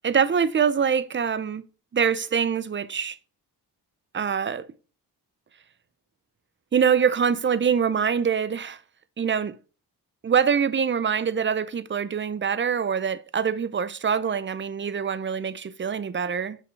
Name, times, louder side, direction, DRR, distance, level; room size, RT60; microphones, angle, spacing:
voice 1, 0.0-1.6 1.9-3.2 4.1-4.7 6.7-8.8 9.2-9.5 10.2-16.6, right 7 dB, 30° right, 0.5 m, -24 dB
5.8 x 5.1 x 4.7 m
cardioid pair, 85°, 40 cm